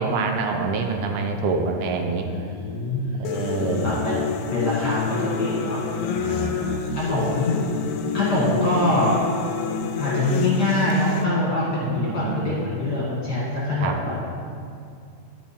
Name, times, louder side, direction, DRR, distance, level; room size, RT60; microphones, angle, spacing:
voice 1, 0.0-2.3 3.2-4.0 6.2-7.0 11.8-12.5 13.8-14.0, right 4 dB, 80° right, 4 dB, 2.1 m, -26 dB
voice 2, 2.3-3.3 3.8-5.8 6.9-7.6 8.1-9.2 10.0-14.1, left 1 dB, 40° left, -7 dB, 1.8 m, -24 dB
sound 1, 3.2-11.2, left 7 dB, 80° left, 1.5 m, -28 dB
11.5 x 5.2 x 4.3 m, 2.4 s
omnidirectional pair, 3.5 m